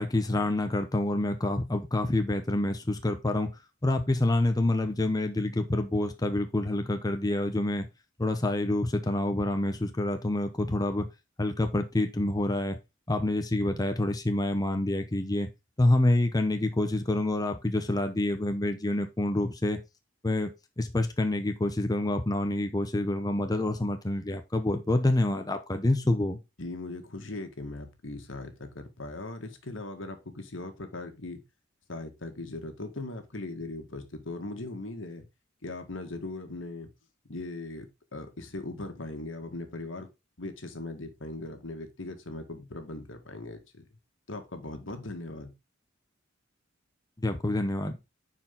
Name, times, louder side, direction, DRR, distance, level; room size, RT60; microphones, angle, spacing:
voice 1, 0.0-3.5 3.8-7.9 8.2-11.1 11.4-12.8 13.1-15.5 15.8-19.8 20.2-20.5 20.8-26.4 47.2-48.0, left 1 dB, 20° left, 0.8 m, -27 dB
voice 2, 26.6-31.4 31.9-35.3 35.6-36.9 37.3-40.1 40.4-43.9 44.3-45.5, left 2 dB, 75° left, 1.7 m, -39 dB
10.0 x 4.6 x 3.8 m
head